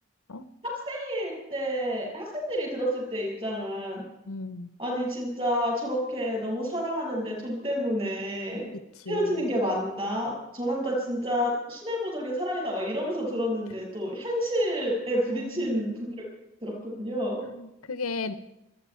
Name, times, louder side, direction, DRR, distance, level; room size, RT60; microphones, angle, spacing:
voice 1, 0.6-4.0 4.8-8.7 9.1-16.2 16.6-17.4, equal, 25° right, -1 dB, 6.8 m, -29 dB
voice 2, 4.3-4.7 9.1-9.4 15.3-15.8 17.4-18.3, left 3 dB, 90° left, 12 dB, 0.8 m, -35 dB
28.5 x 9.8 x 4.6 m, 0.93 s
head